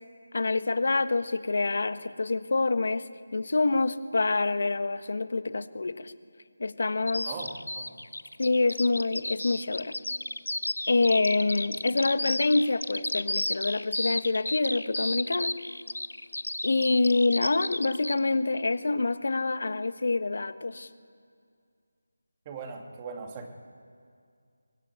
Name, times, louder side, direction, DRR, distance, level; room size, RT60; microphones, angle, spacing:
voice 1, 0.3-6.1 6.6-7.3 8.4-9.9 10.9-15.5 16.6-20.9, left 3 dB, 60° left, 11 dB, 1.4 m, -26 dB
Bird vocalization bird call bird song, 7.1-18.2, left 1 dB, 90° left, 1.1 m, -33 dB
voice 2, 7.2-8.0 22.4-23.5, right 4 dB, 20° right, 3 dB, 2.7 m, -39 dB
24.0 x 20.5 x 9.3 m, 2.2 s
figure-of-eight pair, 165°, 0 cm